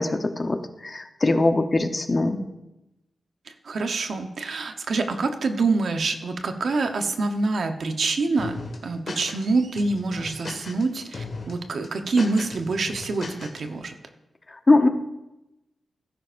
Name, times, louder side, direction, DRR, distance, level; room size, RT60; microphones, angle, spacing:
voice 1, 0.0-2.4 14.7-14.9, left 2 dB, 30° left, 6 dB, 0.9 m, -21 dB
voice 2, 3.6-13.9, right 3 dB, 70° right, 6 dB, 1.0 m, -26 dB
sound 1, 8.4-9.5 9.8-10.8 11.1-11.5 11.8-13.6, left 3 dB, 55° left, 1.8 m, -37 dB
17.0 x 10.0 x 2.6 m, 0.94 s
wide cardioid pair, 110°, 0 cm